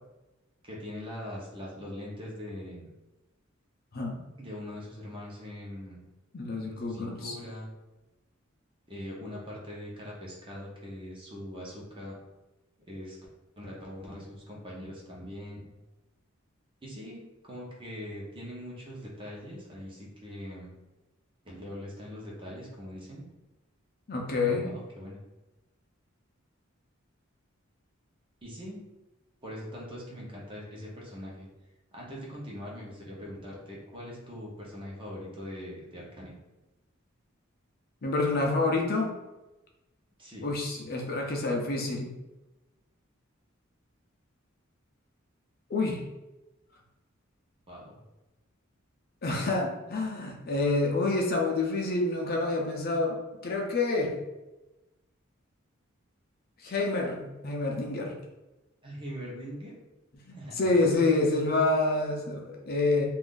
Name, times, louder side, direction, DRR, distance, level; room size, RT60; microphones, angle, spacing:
voice 1, 0.6-2.8 4.4-6.0 6.7-7.7 8.9-12.2 12.9-13.2 13.6-15.7 16.8-20.7 21.4-23.2 24.5-25.2 28.4-28.8 29.4-31.5 31.9-36.3 40.2-40.5 47.7-48.0 58.8-59.7 60.3-60.7, equal, 25° right, -4 dB, 0.8 m, -42 dB
voice 2, 6.3-7.3 24.1-24.7 38.0-39.1 40.4-42.1 45.7-46.0 49.2-54.1 56.6-58.1 60.3-63.1, left 3 dB, 50° left, 0 dB, 0.5 m, -28 dB
2.5 x 2.5 x 3.7 m, 1.0 s
head